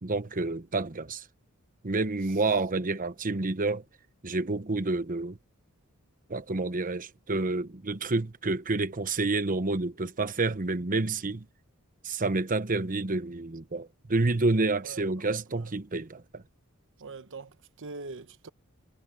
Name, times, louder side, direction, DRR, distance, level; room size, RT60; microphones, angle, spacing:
voice 1, 0.0-1.2 1.8-3.8 4.2-5.4 6.3-11.4 12.0-16.4, right 3 dB, 40° right, 1.0 m, -29 dB
voice 2, 14.8-15.7 17.0-18.5, right 3 dB, 60° right, 1.0 m, -43 dB
head